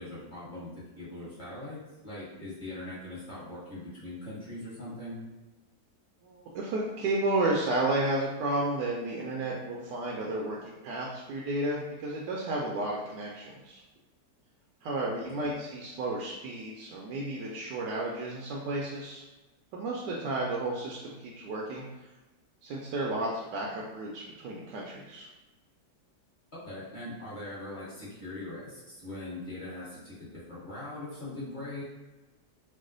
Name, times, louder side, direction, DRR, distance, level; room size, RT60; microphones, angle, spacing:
voice 1, 0.0-5.2 15.2-15.5 26.6-31.8, left 2 dB, 30° left, -8 dB, 1.1 m, -41 dB
voice 2, 6.2-13.8 14.8-19.2 19.7-21.9 22.6-25.3, right 2 dB, 80° right, -3 dB, 1.2 m, -32 dB
3.1 x 2.0 x 3.7 m, 1.1 s
omnidirectional pair, 1.8 m